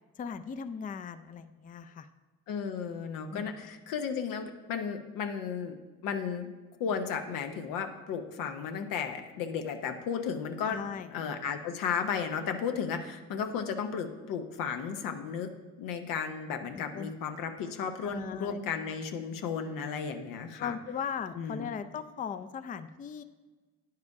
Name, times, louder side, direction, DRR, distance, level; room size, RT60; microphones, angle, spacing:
voice 1, 0.2-2.1 3.3-3.6 10.6-11.1 16.7-17.1 18.0-18.6 20.6-23.2, left 7 dB, 25° left, 10 dB, 0.4 m, -38 dB
voice 2, 2.5-5.8 6.0-6.5 6.8-10.8 11.1-15.5 15.8-20.7 21.4-21.7, left 6 dB, 80° left, 6 dB, 0.8 m, -34 dB
9.6 x 4.8 x 4.7 m, 1.3 s
supercardioid pair, 70°, 32 cm